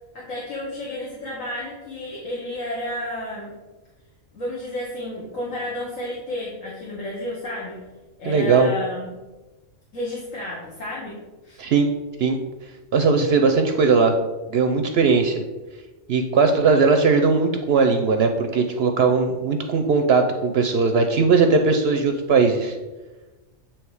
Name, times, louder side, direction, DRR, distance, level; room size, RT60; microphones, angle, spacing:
voice 1, 0.1-3.5 4.3-7.8 8.2-9.1 9.9-11.6, left 1 dB, 80° left, -5 dB, 1.6 m, -31 dB
voice 2, 8.2-8.7 11.6-11.9 12.2-12.4 12.9-14.1 14.5-15.4 16.1-22.8, right 4 dB, 65° right, 5 dB, 0.7 m, -19 dB
8.6 x 3.0 x 4.7 m, 1.2 s
omnidirectional pair, 1.3 m